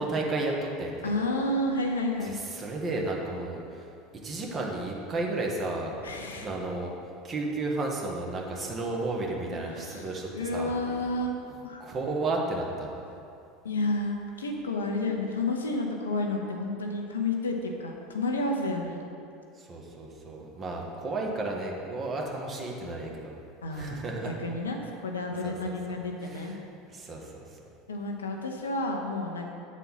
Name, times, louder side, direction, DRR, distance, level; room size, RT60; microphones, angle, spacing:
voice 1, 0.0-1.1 2.2-3.9 4.2-5.9 6.4-6.9 7.2-10.7 11.8-12.9 19.6-23.4 23.7-24.4 25.4-25.7 26.2-26.6 26.9-27.6, right 2 dB, 35° right, -1 dB, 1.3 m, -33 dB
voice 2, 1.0-2.4 6.0-6.5 9.5-10.1 10.3-11.4 11.6-11.9 13.6-19.0 23.6-24.0 24.2-26.5 27.9-29.5, left 2 dB, 85° left, 2 dB, 0.7 m, -31 dB
8.1 x 4.2 x 5.6 m, 2.6 s
hypercardioid pair, 80°, 0 cm